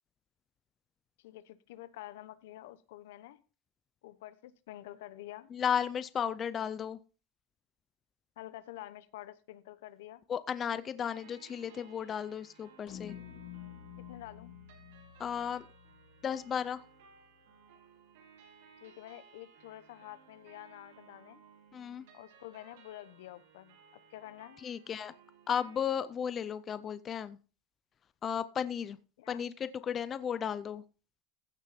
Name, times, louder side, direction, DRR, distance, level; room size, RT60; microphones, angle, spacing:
voice 1, 1.2-3.4 4.0-5.5 8.4-10.2 14.1-14.5 18.8-21.4 22.1-23.8 24.1-24.6 29.2-29.4, left 14 dB, 80° left, 15 dB, 0.9 m, -48 dB
voice 2, 5.5-7.0 10.3-13.2 15.2-15.6 16.2-16.8 21.7-22.0 24.6-25.1 25.5-27.4 28.2-29.0 29.3-30.8, left 8 dB, 20° left, 14 dB, 0.4 m, -34 dB
sound 1, 11.0-25.8, right 6 dB, 85° right, 6.8 m, -60 dB
sound 2, 12.9-17.3, left 11 dB, 40° left, 2.1 m, -50 dB
15.0 x 6.4 x 4.2 m, 0.36 s
supercardioid pair, 175°, 0 cm